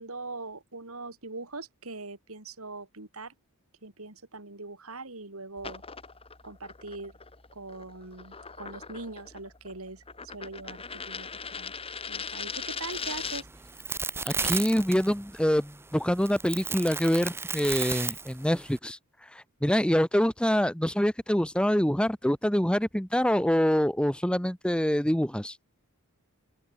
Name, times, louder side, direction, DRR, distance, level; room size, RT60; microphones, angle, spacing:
voice 1, 0.0-3.3 3.8-5.8 6.4-7.2 7.5-11.7 12.1-13.6, right 3 dB, 70° right, 3.6 m, -42 dB
sound 1, 5.6-13.6, left 5 dB, 25° left, 2.2 m, -40 dB
sound 2, 12.9-18.8, right 4 dB, 10° right, 0.7 m, -35 dB
voice 2, 14.2-19.0 19.3-25.6, equal, 5° left, 1.4 m, -25 dB
open air
head